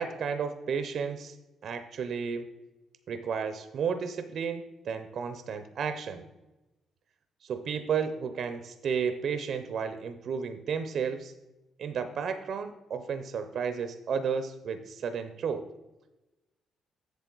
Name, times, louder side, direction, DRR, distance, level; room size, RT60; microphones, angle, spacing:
voice 1, 0.0-1.4 1.6-2.5 3.1-6.3 7.4-11.3 11.8-15.6, right 6 dB, 65° right, 9 dB, 0.6 m, -32 dB
8.2 x 7.0 x 3.9 m, 1.0 s
cardioid pair, 90°, 0 cm